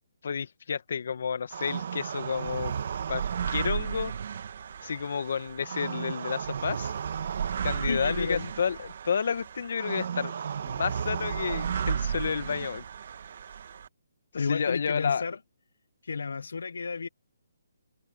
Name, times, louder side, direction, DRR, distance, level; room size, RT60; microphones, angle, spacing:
voice 1, 0.2-2.7 3.1-4.1 4.8-6.9 7.6-10.3 10.6-12.8 14.3-15.2, left 6 dB, 60° left, 1.7 m, -31 dB
sound 1, 1.5-13.9, right 7 dB, 55° right, 1.6 m, -33 dB
voice 2, 7.9-8.5 14.3-15.4 16.0-17.1, left 4 dB, 80° left, 1.1 m, -32 dB
hypercardioid pair, 160°, 0 cm